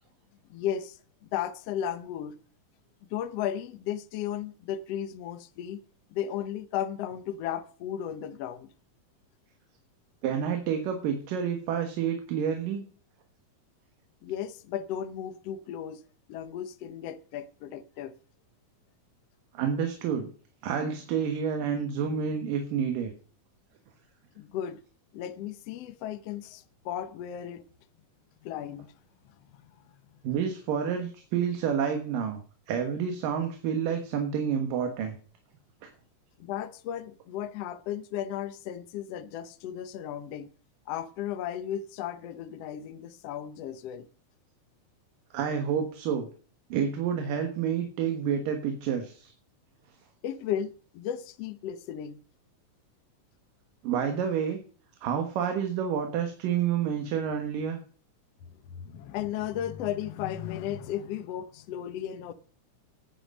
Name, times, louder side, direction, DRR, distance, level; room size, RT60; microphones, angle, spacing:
voice 1, 0.5-2.4 3.1-5.8 6.1-8.7 14.2-16.0 16.3-18.1 24.4-24.8 25.1-27.6 28.4-28.9 29.5-29.7 36.4-40.5 40.9-44.1 50.2-52.2 58.6-62.3, left 10 dB, 70° left, 1.6 m, -35 dB
voice 2, 10.2-12.8 19.5-20.3 20.6-23.1 30.2-32.4 32.7-35.1 35.8-35.9 45.3-46.3 46.7-49.3 53.8-54.6 55.0-57.8, right 7 dB, 80° right, 3.1 m, -29 dB
12.0 x 9.0 x 5.4 m
omnidirectional pair, 3.9 m